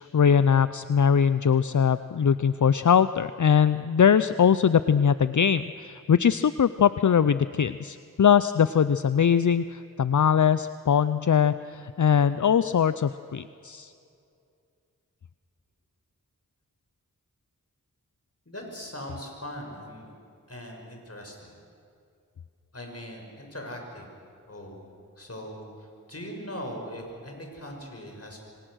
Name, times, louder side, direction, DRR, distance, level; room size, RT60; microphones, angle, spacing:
voice 1, 0.0-13.9, left 7 dB, 60° left, 13 dB, 0.6 m, -21 dB
voice 2, 18.5-20.1 20.5-21.5 22.7-24.1 24.5-24.9 25.2-28.4, equal, 45° left, 1 dB, 5.8 m, -40 dB
27.0 x 24.5 x 6.3 m, 2.5 s
wide cardioid pair, 40°, 34 cm